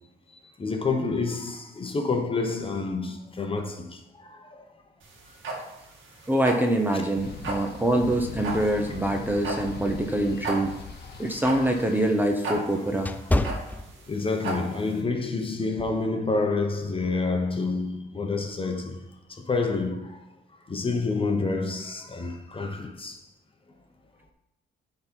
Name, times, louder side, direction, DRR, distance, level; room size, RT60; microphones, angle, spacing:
voice 1, 0.6-4.0 4.3-4.4 11.5-11.6 14.1-19.0 19.5-20.1 20.7-23.1, left 3 dB, 25° left, 1.1 m, -28 dB
sound 1, 5.0-15.0, right 2 dB, 75° right, 1.9 m, -35 dB
voice 2, 6.3-10.7 11.2-13.1, right 1 dB, 10° right, 0.9 m, -25 dB
sound 2, 7.2-12.1, left 6 dB, 55° left, 1.1 m, -40 dB
sound 3, 10.9-14.5 14.9-15.2 15.8-16.1, left 1 dB, 10° left, 0.4 m, -29 dB
9.3 x 3.9 x 4.6 m
cardioid pair, 90°, 20 cm